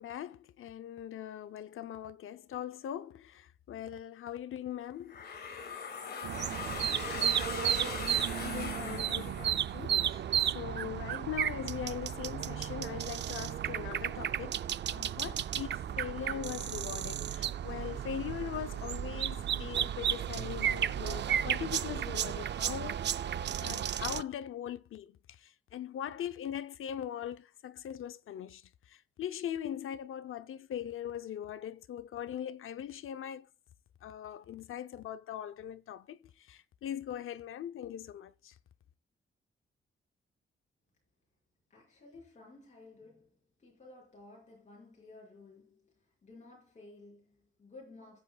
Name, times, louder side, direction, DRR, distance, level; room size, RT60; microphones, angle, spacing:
voice 1, 0.0-5.3 8.4-10.2 10.5-14.6 14.9-23.0 23.6-33.5 34.0-38.5, left 10 dB, 80° left, 0.6 m, -41 dB
sound 1, 5.1-10.0, left 6 dB, 50° left, 2.0 m, -40 dB
voice 2, 6.2-8.2 41.7-48.2, left 2 dB, 35° left, 5.5 m, -56 dB
sound 2, 6.2-24.2, right 10 dB, 60° right, 0.4 m, -33 dB
16.0 x 8.3 x 2.3 m
wide cardioid pair, 180°, 21 cm